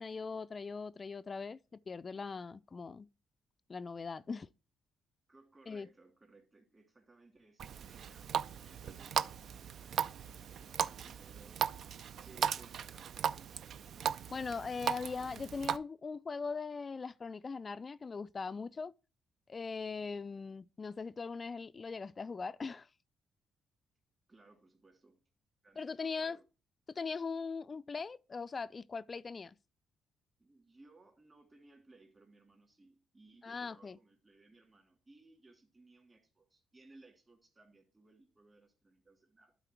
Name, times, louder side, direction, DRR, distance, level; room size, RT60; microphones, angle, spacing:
voice 1, 0.0-3.1 3.7-4.5 5.7-5.9 14.3-18.9 19.5-22.9 25.8-26.4 26.9-29.5 33.4-34.0, left 4 dB, 35° left, 0.3 m, -40 dB
voice 2, 5.3-11.7 12.2-13.5 24.3-25.2 25.6-26.4 30.4-39.5, right 2 dB, 25° right, 2.8 m, -62 dB
Water tap faucet, 7.6-15.8, right 8 dB, 65° right, 0.4 m, -37 dB
12.0 x 4.2 x 4.5 m
cardioid pair, 90°, 0 cm